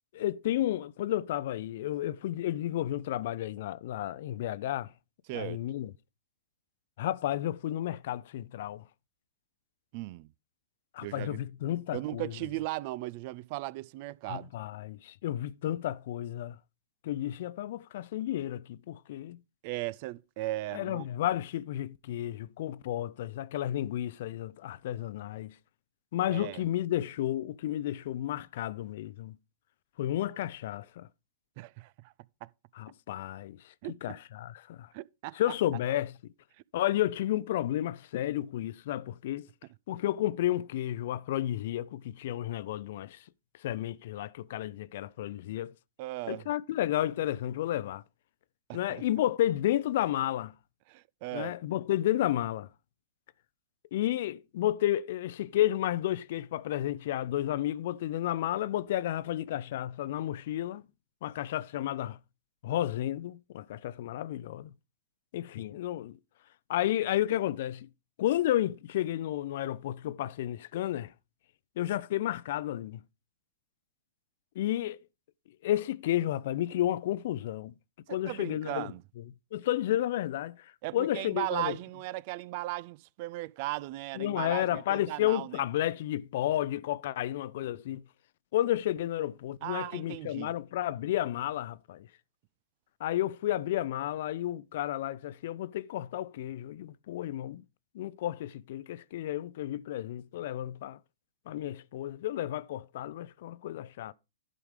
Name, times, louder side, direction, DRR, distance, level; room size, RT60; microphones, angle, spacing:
voice 1, 0.1-4.9 5.3-5.9 7.0-8.8 10.9-12.3 14.3-16.6 17.0-19.4 20.7-25.6 26.1-29.4 30.0-31.1 32.7-33.7 34.0-34.9 35.3-36.3 36.7-39.5 39.9-43.2 43.6-45.7 46.3-48.0 48.7-50.5 51.3-52.7 53.9-60.8 61.2-62.2 62.6-64.7 65.3-66.2 66.7-67.9 68.2-71.1 71.8-73.0 74.6-75.0 75.6-77.8 78.1-78.9 79.2-79.3 79.5-81.8 84.2-88.0 88.5-92.1 93.0-97.6 97.9-101.0 101.5-104.1, left 13 dB, 55° left, 0.5 m, -32 dB
voice 2, 5.3-5.6 9.9-10.3 11.0-11.4 11.9-14.5 19.6-21.0 26.3-26.6 31.6-32.1 33.8-34.2 34.9-35.4 46.0-46.5 48.7-49.0 50.9-51.5 78.1-79.0 80.8-85.6 89.6-90.5, right 18 dB, 45° right, 0.4 m, -37 dB
11.0 x 5.1 x 5.0 m
hypercardioid pair, 120°, 0 cm